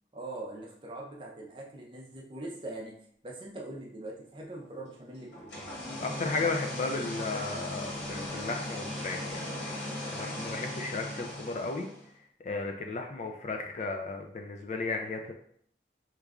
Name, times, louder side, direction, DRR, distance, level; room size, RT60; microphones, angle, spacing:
voice 1, 0.1-3.0 3.2-5.5, right 2 dB, 30° right, -2 dB, 0.5 m, -42 dB
sound 1, 5.3-12.1, left 1 dB, 85° left, 1.0 m, -38 dB
voice 2, 6.0-9.8 10.1-11.9 12.4-15.3, left 3 dB, 40° left, 3 dB, 0.3 m, -34 dB
3.1 x 2.3 x 3.5 m, 0.65 s
head